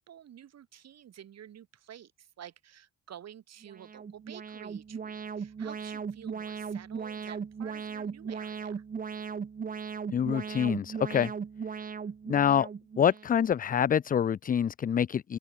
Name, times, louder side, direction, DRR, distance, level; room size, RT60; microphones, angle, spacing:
voice 1, 0.0-8.8, right 10 dB, 60° right, 1.9 m, -50 dB
Alarm, 3.6-13.5, right 6 dB, 30° right, 0.8 m, -38 dB
voice 2, 10.1-11.3 12.3-12.7 13.0-15.4, left 8 dB, 30° left, 0.4 m, -26 dB
open air
cardioid pair, 90°, 30 cm